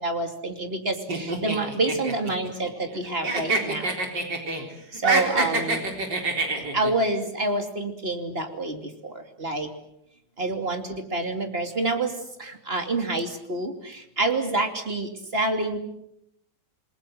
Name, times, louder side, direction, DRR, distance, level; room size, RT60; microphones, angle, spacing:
voice 1, 0.0-4.0 4.9-5.9 6.7-9.7 10.4-12.1 12.4-15.8, right 2 dB, 35° right, 5 dB, 2.9 m, -28 dB
sound 1, 1.1-3.0 3.2-4.6 4.9-6.9, right 2 dB, 80° right, 4.6 m, -26 dB
28.0 x 21.0 x 7.8 m, 0.78 s
omnidirectional pair, 1.9 m